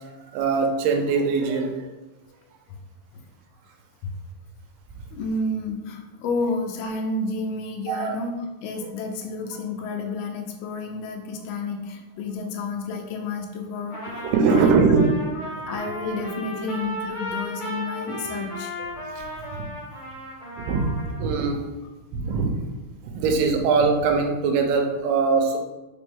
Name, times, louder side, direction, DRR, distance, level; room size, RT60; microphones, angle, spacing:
voice 1, 0.3-1.7 7.9-8.2 14.2-15.3 19.5-19.6 20.6-21.6 22.1-22.5 23.1-25.6, right 4 dB, 85° right, 3 dB, 2.7 m, -21 dB
voice 2, 5.1-15.0 15.7-18.7, left 3 dB, 85° left, 3 dB, 2.7 m, -30 dB
Trumpet, 13.9-21.3, equal, 65° left, 0.4 m, -35 dB
5.1 x 5.1 x 3.6 m, 1.1 s
omnidirectional pair, 4.5 m